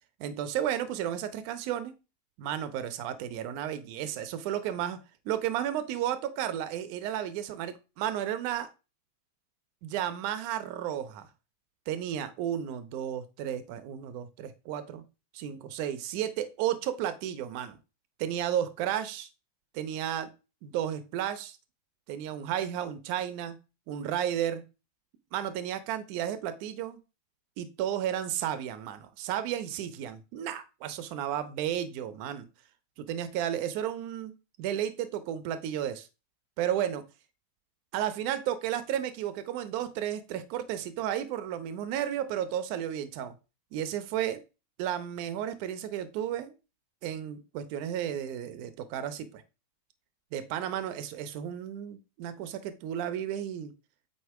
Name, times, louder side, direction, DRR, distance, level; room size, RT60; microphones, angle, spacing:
voice 1, 0.2-1.9 2.4-8.7 9.8-11.3 11.9-15.0 15.3-17.8 18.2-19.3 19.7-20.3 20.6-21.6 22.1-23.6 23.9-24.6 25.3-27.0 27.6-32.5 33.0-34.3 34.6-36.1 36.6-37.0 37.9-43.3 43.7-44.4 44.8-46.5 47.0-49.4 50.3-53.7, right 10 dB, 45° right, 11 dB, 0.8 m, -33 dB
8.1 x 2.9 x 4.8 m, 0.30 s
supercardioid pair, 160°, 0 cm